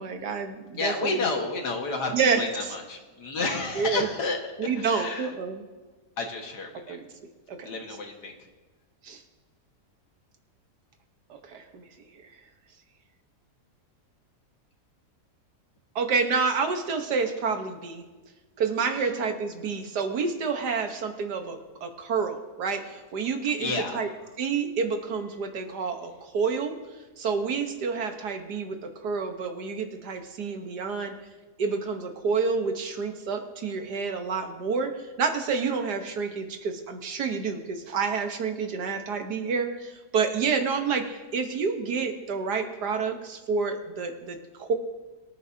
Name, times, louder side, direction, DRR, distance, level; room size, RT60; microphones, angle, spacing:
voice 1, 0.0-1.2 2.1-2.4 3.8-4.1 4.6-5.6 6.9-7.1 7.5-7.7 9.0-9.2 11.3-11.8 16.0-18.0 18.6-24.1 24.4-26.7 27.2-31.2 31.6-34.9 35.2-44.7, right 5 dB, 80° right, 5 dB, 1.8 m, -29 dB
voice 2, 0.8-5.4 6.2-7.0 7.6-8.3 19.0-19.1 23.6-24.3, left 3 dB, 85° left, 2 dB, 2.2 m, -31 dB
23.5 x 9.5 x 2.8 m, 1.2 s
omnidirectional pair, 1.7 m